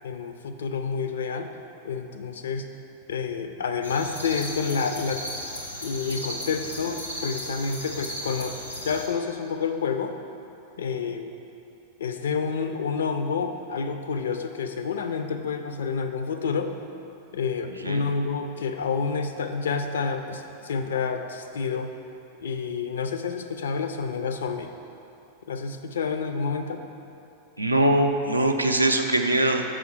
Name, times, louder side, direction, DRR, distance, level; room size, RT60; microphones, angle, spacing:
voice 1, 0.0-1.5 1.8-2.7 3.1-5.2 5.8-8.6 8.8-10.1 10.8-11.3 12.0-16.7 17.3-21.9 22.4-24.7 25.5-26.8, left 5 dB, 65° left, 7 dB, 0.4 m, -29 dB
sound 1, 3.8-9.1, equal, 90° left, 0.9 m, -36 dB
voice 2, 27.6-29.6, right 1 dB, 85° right, 4 dB, 0.4 m, -22 dB
6.2 x 4.8 x 4.6 m, 2.8 s
figure-of-eight pair, 90°, 0 cm